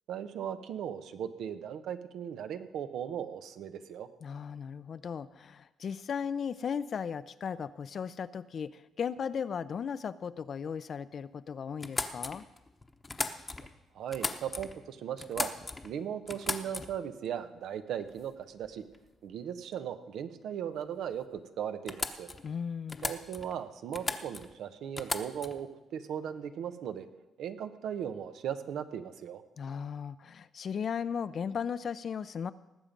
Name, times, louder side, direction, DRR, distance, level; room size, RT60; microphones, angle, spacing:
voice 1, 0.1-4.1 13.9-15.5 15.8-18.8 19.2-22.3 23.0-27.1 27.4-29.4, right 9 dB, 75° right, 9 dB, 0.9 m, -38 dB
voice 2, 4.2-12.4 22.4-23.1 29.6-32.5, left 7 dB, 50° left, 15 dB, 0.5 m, -36 dB
sound 1, 11.8-13.7 14.1-14.8 15.2-15.9 16.3-17.1 18.1-18.3 18.6-19.1 21.0-21.1 21.4-21.5 21.9-22.5 22.9-23.6 23.9-24.5 25.0-25.6, left 3 dB, 25° left, 1.0 m, -37 dB
19.0 x 7.5 x 5.3 m, 1.0 s
cardioid pair, 90°, 0 cm